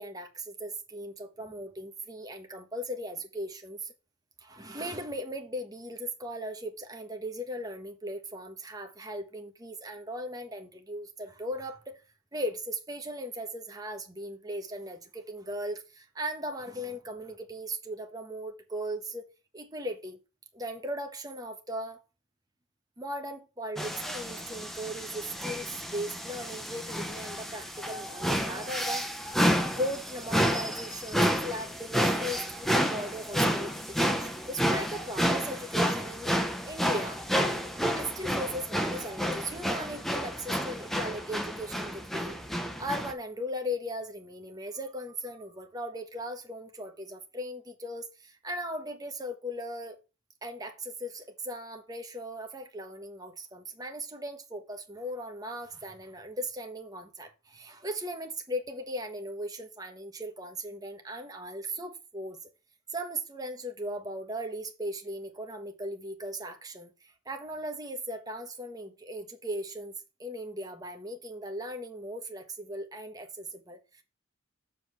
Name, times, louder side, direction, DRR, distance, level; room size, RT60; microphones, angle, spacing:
voice 1, 0.0-3.9 4.4-12.0 12.3-19.2 19.5-20.2 20.5-22.0 23.0-29.2 29.8-36.3 36.6-37.2 37.9-42.3 42.8-50.0 50.4-62.4 62.9-69.9 70.2-74.0, equal, 20° right, 1.4 m, -38 dB
sound 1, 23.8-43.1, equal, ahead, 0.9 m, -30 dB
7.5 x 4.5 x 6.3 m
head